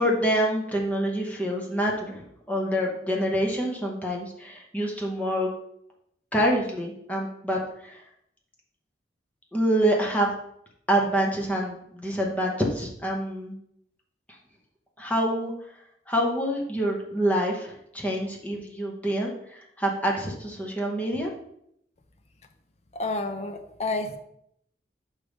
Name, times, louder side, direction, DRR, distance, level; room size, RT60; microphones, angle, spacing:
voice 1, 0.0-2.2 2.5-5.5 6.3-8.0 9.5-10.3 10.9-13.5 15.0-15.5 16.1-21.3, equal, 10° left, -1 dB, 0.9 m, -26 dB
voice 2, 22.9-24.2, left 2 dB, 35° left, 6 dB, 0.6 m, -30 dB
6.8 x 3.2 x 5.2 m, 0.74 s
head